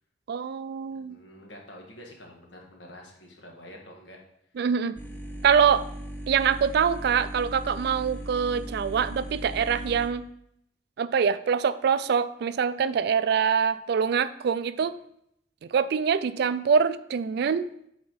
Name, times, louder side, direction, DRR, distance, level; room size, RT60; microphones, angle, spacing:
voice 1, 0.3-1.2 4.6-5.0 5.4-5.9 6.3-10.2 11.0-14.9 15.7-17.7, right 7 dB, 60° right, 15 dB, 0.3 m, -24 dB
voice 2, 1.0-4.2, left 1 dB, 75° left, 0 dB, 1.6 m, -47 dB
sound 1, 5.0-10.1, right 1 dB, 10° left, 0.7 m, -38 dB
7.6 x 4.4 x 4.1 m, 0.74 s
head